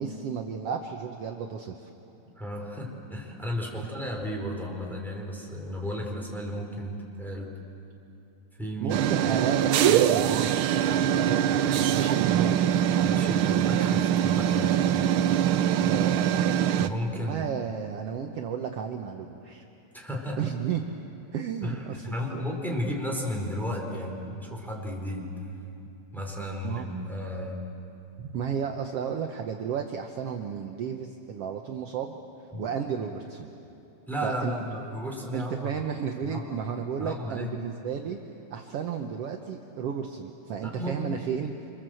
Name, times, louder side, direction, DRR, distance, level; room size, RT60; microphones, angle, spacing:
voice 1, 0.0-1.9 8.8-12.8 15.8-16.2 17.1-19.7 20.4-20.8 21.3-22.4 26.6-26.9 28.2-32.2 32.6-33.5 34.2-34.5 35.3-38.2 38.5-41.7, right 7 dB, 65° right, 3 dB, 1.8 m, -33 dB
voice 2, 2.4-7.5 8.6-9.0 13.0-15.1 16.8-17.5 19.9-20.5 21.6-25.3 26.1-27.6 32.5-32.7 34.1-35.7 36.2-36.4 37.0-37.5 40.6-41.0, equal, ahead, -1 dB, 3.8 m, -34 dB
sound 1, 8.9-16.9, right 10 dB, 80° right, 1.2 m, -23 dB
27.0 x 26.5 x 7.8 m, 2.9 s
omnidirectional pair, 3.3 m